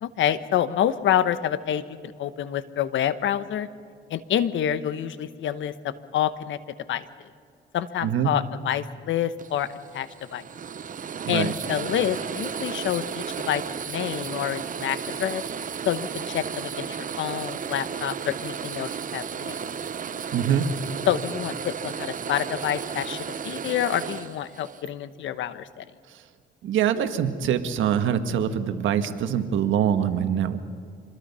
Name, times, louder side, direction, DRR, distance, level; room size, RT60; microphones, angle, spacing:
voice 1, 0.0-1.8 2.2-3.7 4.1-6.6 6.9-7.0 7.7-10.4 11.3-15.4 15.8-19.5 21.1-25.8, left 10 dB, 75° left, 13 dB, 1.1 m, -27 dB
voice 2, 8.0-8.3 11.2-11.5 20.3-20.7 26.1-26.2 26.6-30.6, right 9 dB, 80° right, 9 dB, 1.5 m, -24 dB
sound 1, 9.4-24.9, right 7 dB, 40° right, 0.8 m, -34 dB
26.5 x 21.5 x 5.6 m, 2.2 s
cardioid pair, 90°, 20 cm